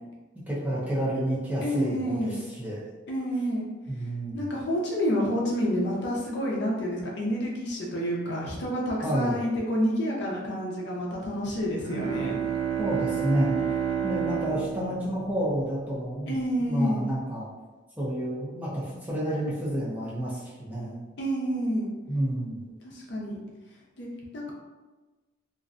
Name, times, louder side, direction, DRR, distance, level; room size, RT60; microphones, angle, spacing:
voice 1, 0.5-2.8 3.9-4.4 9.0-9.4 12.8-13.8 14.0-17.5 18.0-21.0 22.1-22.6, right 1 dB, 10° right, -8 dB, 0.5 m, -30 dB
voice 2, 1.6-2.4 3.1-3.7 4.3-12.4 16.3-17.1 21.2-21.9 22.8-23.4 24.0-24.1 24.3-24.5, equal, 60° left, -3 dB, 0.5 m, -29 dB
Bowed string instrument, 11.7-16.3, right 8 dB, 80° right, 0.4 m, -30 dB
2.5 x 2.1 x 2.4 m, 1.2 s
head